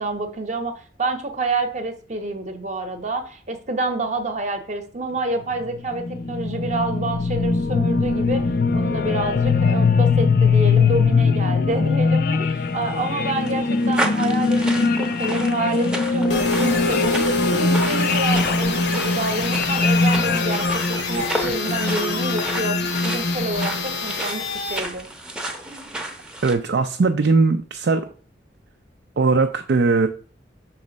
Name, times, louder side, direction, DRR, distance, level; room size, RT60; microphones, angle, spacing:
voice 1, 0.0-8.4 8.7-22.8 23.0-25.1, right 2 dB, 40° right, 6 dB, 0.8 m, -28 dB
sound 1, 5.5-23.9, left 4 dB, 50° left, 0.4 m, -21 dB
sound 2, 12.7-26.5, right 1 dB, 5° right, 0.7 m, -33 dB
sound 3, 16.3-24.8, left 3 dB, 65° left, 0.9 m, -26 dB
voice 2, 26.4-28.0 29.2-30.1, right 4 dB, 65° right, 6 dB, 0.4 m, -19 dB
6.0 x 3.2 x 5.1 m, 0.41 s
head